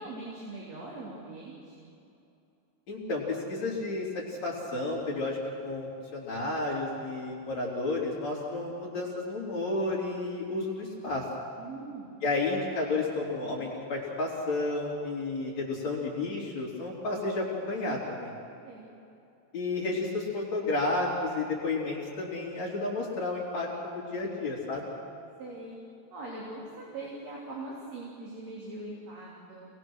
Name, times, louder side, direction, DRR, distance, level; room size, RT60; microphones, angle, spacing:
voice 1, 0.0-1.9 11.6-12.2 18.6-18.9 25.4-25.8 26.1-29.7, right 2 dB, 45° right, -5 dB, 4.5 m, -41 dB
voice 2, 2.9-11.2 12.2-18.3 19.5-24.9, left 2 dB, 50° left, -4 dB, 4.5 m, -32 dB
28.0 x 20.0 x 6.3 m, 2.6 s
omnidirectional pair, 4.1 m